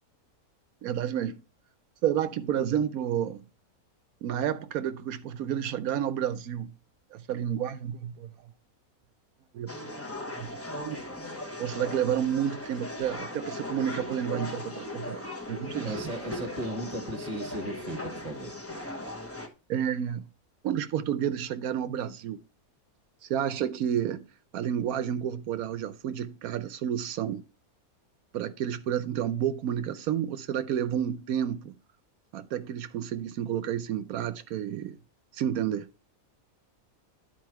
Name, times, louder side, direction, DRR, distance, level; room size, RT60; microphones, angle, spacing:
voice 1, 0.8-1.4 2.0-3.4 4.2-6.7 7.1-8.3 9.5-9.7 10.4-10.5 10.7-11.0 11.6-16.0 19.7-20.3 20.6-22.4 23.2-24.3 24.5-27.4 28.3-31.7 32.3-35.0 35.3-35.9, right 9 dB, 80° right, 1.1 m, -30 dB
sound 1, 9.7-19.5, left 2 dB, 10° left, 0.9 m, -38 dB
voice 2, 15.8-18.5, right 1 dB, 30° right, 1.2 m, -36 dB
10.5 x 4.5 x 4.6 m
omnidirectional pair, 1.6 m